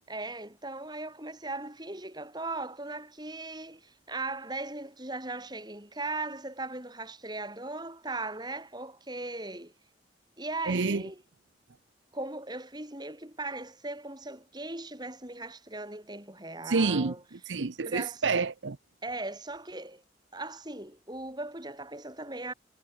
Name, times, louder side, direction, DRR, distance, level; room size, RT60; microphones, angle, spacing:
voice 1, 0.1-9.7 10.4-11.2 12.1-17.2 17.8-18.2 19.0-20.0 20.3-22.5, right 2 dB, 25° right, 6.5 m, -38 dB
voice 2, 10.7-11.0 16.7-18.8, right 4 dB, 90° right, 0.8 m, -28 dB
head